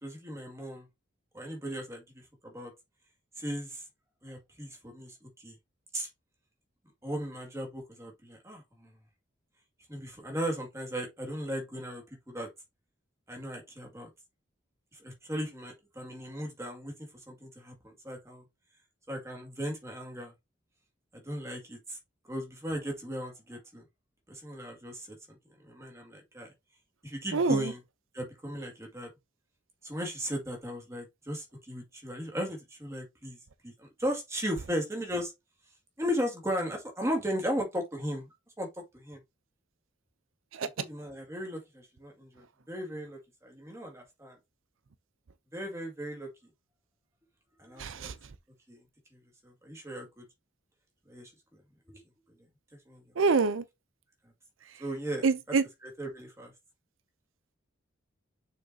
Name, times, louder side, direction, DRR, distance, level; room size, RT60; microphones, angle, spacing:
voice 1, 0.0-0.9 1.3-2.7 3.4-3.8 4.2-5.6 5.9-6.1 7.0-8.9 9.9-12.5 13.3-14.1 14.9-16.9 17.3-18.4 19.1-20.3 21.1-22.0 22.3-23.8 24.3-25.4 25.6-26.5 27.0-27.8 28.1-29.1 29.8-33.4 33.6-35.3 36.0-38.3 38.6-39.2 40.8-44.4 45.5-46.3 47.6-48.1 48.7-48.8 49.1-50.2 51.1-51.6 51.9-52.0 52.9-53.0 54.8-55.6 55.8-56.5, equal, 15° right, 2.1 m, -37 dB
voice 2, 47.8-48.1 53.2-53.6 55.2-55.6, right 4 dB, 90° right, 0.6 m, -25 dB
6.4 x 5.2 x 2.8 m
head